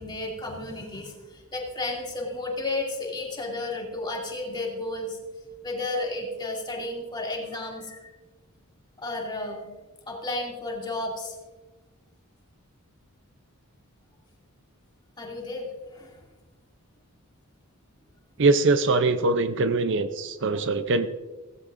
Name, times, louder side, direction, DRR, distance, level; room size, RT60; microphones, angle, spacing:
voice 1, 0.0-5.2 5.6-8.1 9.0-9.7 10.1-11.4 15.2-16.3 19.4-19.5 20.5-20.7, left 2 dB, 20° left, -1 dB, 2.5 m, -33 dB
voice 2, 18.4-21.1, right 3 dB, 55° right, 10 dB, 0.6 m, -22 dB
17.0 x 15.0 x 2.6 m, 1.2 s
head